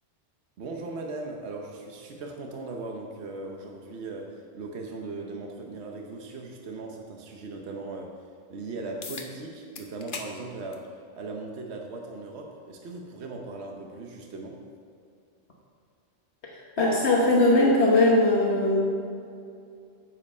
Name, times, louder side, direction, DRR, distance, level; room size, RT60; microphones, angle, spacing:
voice 1, 0.6-8.2 8.5-14.6, right 3 dB, 70° right, 1 dB, 1.1 m, -38 dB
sound 1, 9.0-9.3 9.7-10.3 10.7-10.9 11.9-12.0 17.0-17.1, left 4 dB, 50° left, 1.0 m, -38 dB
voice 2, 16.4-18.9, left 2 dB, 65° left, -3 dB, 1.4 m, -21 dB
9.8 x 7.7 x 5.4 m, 2.5 s
omnidirectional pair, 1.2 m